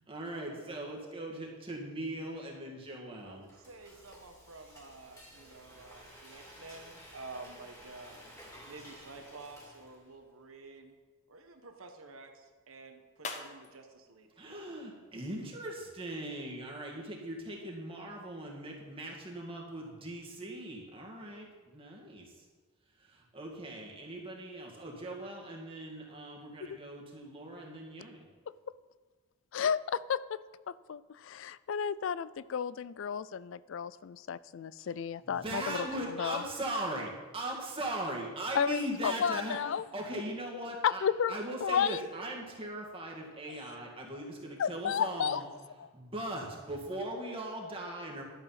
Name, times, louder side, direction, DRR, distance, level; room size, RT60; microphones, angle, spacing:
voice 1, 0.1-3.5 14.4-22.5 23.0-28.3 34.8-34.9 35.2-41.0 41.3-45.4 45.9-48.2, right 1 dB, 25° right, -1 dB, 1.9 m, -39 dB
Frying (food), 3.1-10.2, equal, 15° left, 2.8 m, -54 dB
voice 2, 3.2-8.2 8.7-11.0 11.3-14.3, right 3 dB, 70° right, 5 dB, 1.4 m, -50 dB
sound 1, 10.4-15.6, left 4 dB, 35° left, 0.9 m, -50 dB
voice 3, 29.5-30.4 30.7-35.9 36.2-36.4 38.6-39.8 40.8-42.0 43.5-43.6 44.6-45.4, left 7 dB, 60° left, 18 dB, 0.3 m, -32 dB
11.5 x 7.8 x 5.7 m, 1.4 s
head